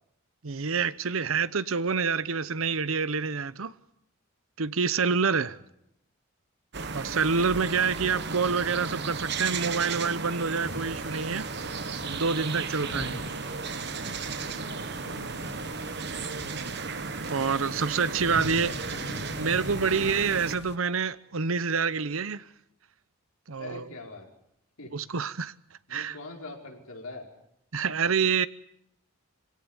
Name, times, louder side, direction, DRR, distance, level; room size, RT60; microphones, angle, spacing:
voice 1, 0.4-3.7 4.6-5.6 6.9-11.5 12.1-13.3 16.5-16.8 17.3-18.7 19.4-22.4 23.5-23.9 24.9-25.5 25.9-26.1 27.7-28.5, right 5 dB, 70° right, 0.9 m, -27 dB
sound 1, 6.7-20.6, right 4 dB, 50° right, 1.2 m, -35 dB
voice 2, 7.4-7.9 15.3-16.1 18.2-19.0 23.5-24.3 24.8-24.9 25.9-27.3, left 2 dB, 80° left, 5.2 m, -44 dB
sound 2, 10.5-20.8, left 2 dB, 50° left, 1.2 m, -43 dB
25.0 x 17.0 x 9.6 m
head